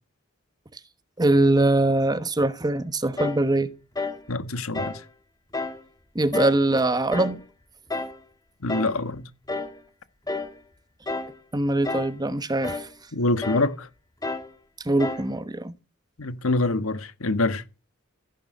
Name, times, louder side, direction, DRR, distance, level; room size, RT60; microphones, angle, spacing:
voice 1, 1.2-3.7 6.1-7.4 11.5-12.9 14.8-15.7, right 2 dB, 20° right, 1.1 m, -22 dB
sound 1, 3.2-3.5 3.9-4.2 4.7-5.0 5.5-5.8 6.3-6.6 7.1-7.4 7.9-8.2 8.7-9.0 9.5-9.8 10.3-10.6 11.1-11.4 11.8-12.2 12.6-12.9 13.4-13.7 14.2-14.5 15.0-15.3, left 3 dB, 20° left, 2.0 m, -31 dB
voice 2, 4.3-5.0 8.6-9.2 13.1-13.9 16.2-17.6, left 2 dB, 85° left, 1.5 m, -25 dB
15.0 x 11.0 x 6.6 m
head